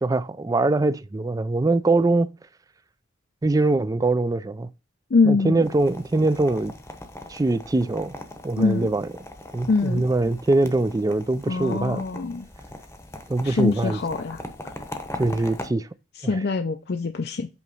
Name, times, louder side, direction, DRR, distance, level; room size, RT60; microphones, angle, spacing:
voice 1, 0.0-2.3 3.4-4.7 5.2-6.7 7.3-8.1 8.4-9.1 9.5-12.1 13.3-14.0 15.1-15.9 16.2-16.4, right 2 dB, 20° right, 0.3 m, -23 dB
voice 2, 5.1-5.6 8.6-8.9 9.7-10.0 11.5-12.5 13.4-14.4 16.2-17.5, left 4 dB, 55° left, 0.5 m, -23 dB
sound 1, 5.6-15.7, left 1 dB, 15° left, 0.9 m, -40 dB
8.4 x 3.0 x 5.3 m
head